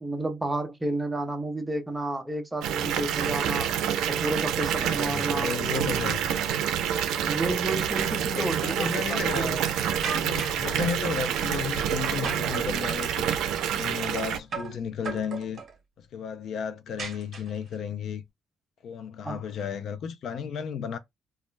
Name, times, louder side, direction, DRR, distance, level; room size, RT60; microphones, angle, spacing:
voice 1, 0.0-3.7 4.1-5.5 7.3-9.5 19.2-19.4, right 1 dB, 5° right, 0.5 m, -31 dB
Water tap faucet / Bathtub (filling or washing) / Fill (with liquid), 2.6-14.4, right 9 dB, 85° right, 0.4 m, -27 dB
voice 2, 4.6-6.3 8.2-9.7 10.2-13.4 13.7-15.6 16.0-18.2 18.8-21.0, left 7 dB, 55° left, 0.3 m, -34 dB
sound 1, 10.0-10.7 12.2-13.1 14.5-14.8 15.0-15.7 17.0-17.7, right 5 dB, 35° right, 1.1 m, -36 dB
2.3 x 2.0 x 3.1 m
cardioid pair, 155°, 0 cm